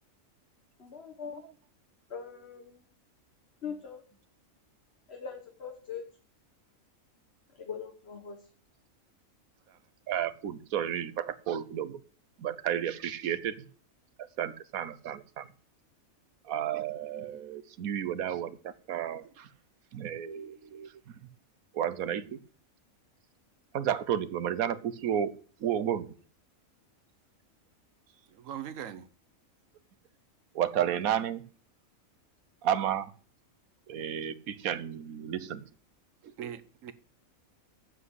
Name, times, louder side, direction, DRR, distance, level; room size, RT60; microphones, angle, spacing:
voice 1, 0.8-1.4 2.1-2.8 3.6-4.0 5.1-6.1 7.6-8.4, left 6 dB, 50° left, 1.6 m, -41 dB
voice 2, 10.1-12.0 12.4-13.5 14.4-15.5 16.4-19.5 19.9-21.2 21.7-22.4 23.7-25.3 25.6-26.1 30.5-31.4 32.6-33.1 33.9-35.6 36.4-36.5, right 9 dB, 90° right, 1.3 m, -32 dB
voice 3, 28.3-29.1 36.4-36.9, right 9 dB, 70° right, 1.2 m, -41 dB
8.0 x 7.6 x 8.1 m
omnidirectional pair, 1.4 m